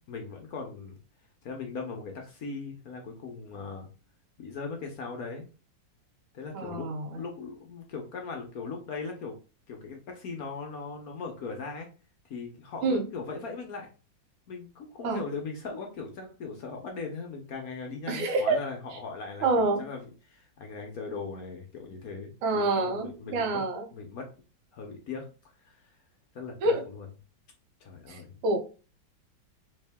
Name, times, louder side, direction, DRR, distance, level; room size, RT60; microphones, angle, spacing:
voice 1, 0.1-1.0 1.4-3.9 4.4-5.5 6.3-9.4 9.7-11.9 12.3-13.9 14.5-23.6 23.9-24.3 24.7-25.3 25.6-25.8 26.3-27.1 27.8-28.4, left 4 dB, 60° left, 2 dB, 1.1 m, -39 dB
voice 2, 6.5-7.2 12.8-13.0 15.0-15.2 18.1-18.6 19.4-19.8 22.4-23.9 26.6-26.8 28.1-28.6, right 3 dB, 90° right, 5 dB, 1.6 m, -27 dB
3.6 x 3.2 x 3.4 m, 0.34 s
omnidirectional pair, 2.1 m